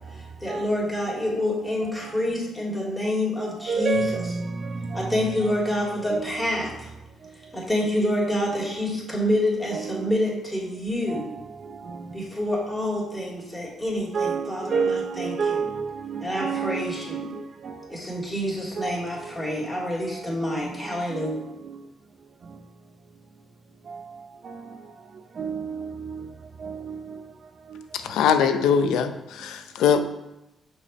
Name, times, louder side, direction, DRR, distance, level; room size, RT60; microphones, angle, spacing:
voice 1, 0.1-4.0 4.9-6.9 7.5-11.4 12.1-15.7 16.2-17.2 17.9-21.4, left 1 dB, 10° left, 2.6 m, -27 dB
voice 2, 1.1-1.4 3.6-6.5 8.5-8.8 9.7-10.2 11.1-11.3 11.6-12.1 14.1-17.9 18.8-19.0 20.6-21.8 23.9-24.0 24.4-24.9 25.4-26.3 26.6-27.2 27.7-27.8, right 5 dB, 50° right, 0.7 m, -31 dB
voice 3, 27.9-30.0, left 7 dB, 85° left, 0.6 m, -22 dB
5.8 x 4.6 x 5.5 m
cardioid pair, 90°, 0 cm